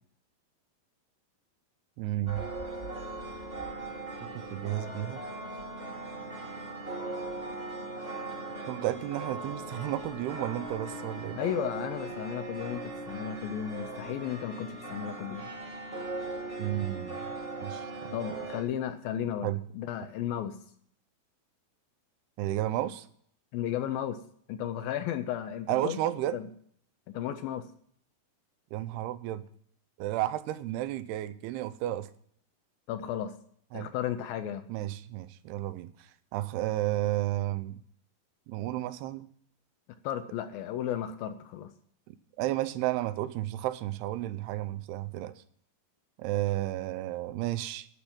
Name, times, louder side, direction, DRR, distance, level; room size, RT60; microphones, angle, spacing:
voice 1, 2.0-2.4 4.5-5.2 8.7-11.4 16.6-17.2 17.6-17.9 19.4-19.6 22.4-23.1 25.7-26.4 28.7-29.4 30.0-32.1 33.7-33.9 34.7-37.8 38.5-39.3 42.1-45.4 46.2-47.9, right 14 dB, 80° right, 13 dB, 2.6 m, -32 dB
sound 1, 2.3-18.6, right 2 dB, 35° right, 0.9 m, -39 dB
voice 2, 11.4-15.5 18.1-20.6 23.5-24.2 24.5-26.0 26.3-26.5 27.1-27.7 32.9-33.3 33.7-34.7 40.0-41.7, left 10 dB, 75° left, 9 dB, 2.3 m, -34 dB
12.0 x 5.8 x 8.7 m, 0.63 s
omnidirectional pair, 4.6 m